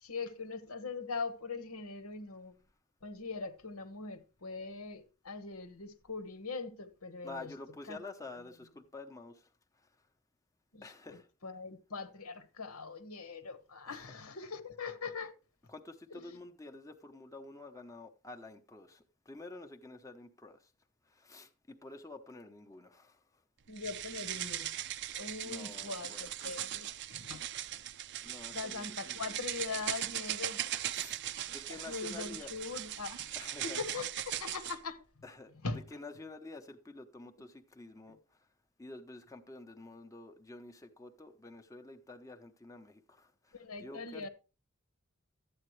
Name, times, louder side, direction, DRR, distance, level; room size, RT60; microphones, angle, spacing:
voice 1, 0.0-2.5 3.0-7.5 7.9-8.0 10.7-15.3 16.1-16.4 23.7-24.7 25.1-27.4 28.5-30.6 31.7-33.4 33.6-35.2 35.6-35.8 43.5-44.3, left 4 dB, 85° left, 1.2 m, -41 dB
voice 2, 7.2-9.5 9.8-9.9 10.8-11.3 13.9-14.1 15.7-20.7 21.1-23.2 25.4-26.6 28.2-29.3 30.9-31.2 31.5-32.5 33.4-33.8 35.2-35.5 35.9-38.2 38.8-44.3, left 2 dB, 15° left, 0.8 m, -49 dB
sound 1, 23.8-34.8, right 12 dB, 55° right, 0.5 m, -39 dB
12.5 x 8.7 x 3.2 m
head